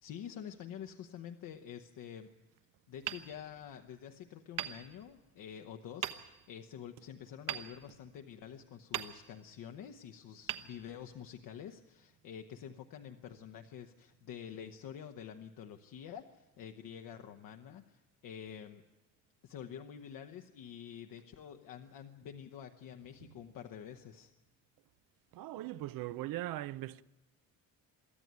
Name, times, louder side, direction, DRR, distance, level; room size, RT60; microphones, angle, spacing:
voice 1, 0.0-2.3 2.9-18.8 19.4-24.3, left 8 dB, 70° left, 1.0 m, -48 dB
Hammer, 3.0-4.0 4.5-5.5 6.0-6.6 7.5-8.4 8.9-9.7 10.4-11.4, right 11 dB, 65° right, 1.2 m, -42 dB
voice 2, 25.3-27.0, right 15 dB, 85° right, 0.6 m, -39 dB
23.5 x 14.0 x 9.4 m
cardioid pair, 175°, 34 cm